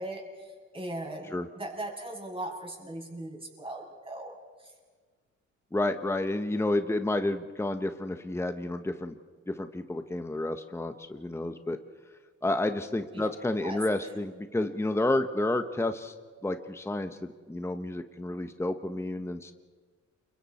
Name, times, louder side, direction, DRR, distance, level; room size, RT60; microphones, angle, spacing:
voice 1, 0.0-4.7 13.1-13.3 13.6-13.8, right 1 dB, 20° right, 0 dB, 6.9 m, -39 dB
voice 2, 5.7-9.2 9.5-11.8 12.4-16.1 16.4-19.5, left 2 dB, 10° left, 8 dB, 1.1 m, -30 dB
29.0 x 24.5 x 4.3 m, 1.5 s
cardioid pair, 90°, 30 cm